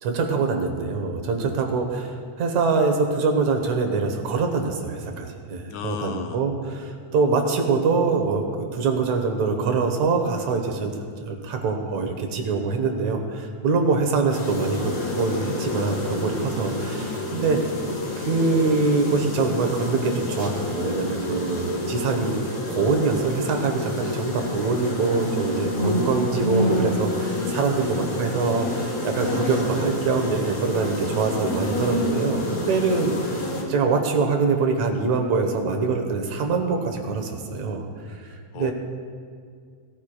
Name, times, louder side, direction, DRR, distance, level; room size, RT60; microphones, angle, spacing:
voice 1, 0.0-10.9 11.3-17.6 18.2-22.4 22.7-33.4 33.7-38.7, right 4 dB, 70° right, 4 dB, 2.4 m, -24 dB
voice 2, 5.7-6.5 27.3-28.2 38.5-38.7, left 8 dB, 80° left, 6 dB, 1.9 m, -35 dB
sound 1, 14.3-33.6, left 1 dB, 50° left, 2.7 m, -28 dB
18.5 x 13.5 x 2.3 m, 2.1 s
omnidirectional pair, 3.4 m